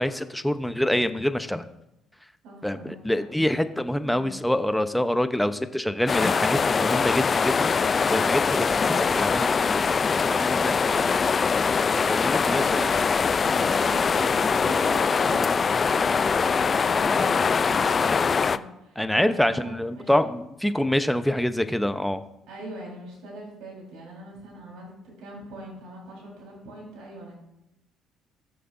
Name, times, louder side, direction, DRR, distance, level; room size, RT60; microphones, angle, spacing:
voice 1, 0.0-1.6 2.6-9.9 10.2-10.7 12.1-12.9 13.5-13.7 19.0-22.2, left 1 dB, 5° left, 10 dB, 0.8 m, -26 dB
voice 2, 2.4-3.2 4.0-4.4 10.6-11.6 12.4-13.0 13.4-20.1 22.5-27.4, right 1 dB, 75° right, -4 dB, 4.3 m, -41 dB
sound 1, 6.1-18.6, left 5 dB, 40° left, 0.4 m, -23 dB
19.5 x 6.7 x 2.7 m, 0.85 s
supercardioid pair, 70°, 0 cm